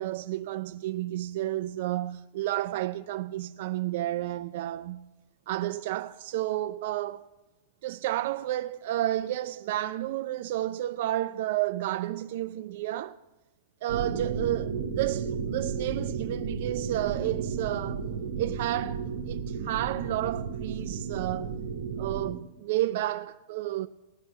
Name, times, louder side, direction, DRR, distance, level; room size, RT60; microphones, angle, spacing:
voice 1, 0.0-5.1 5.5-7.3 7.8-13.2 13.8-18.1 18.4-21.5 22.0-23.9, right 14 dB, 60° right, 0.3 m, -31 dB
sound 1, 13.9-22.3, right 6 dB, 90° right, 1.0 m, -33 dB
18.5 x 6.3 x 5.6 m
hypercardioid pair, 125°, 0 cm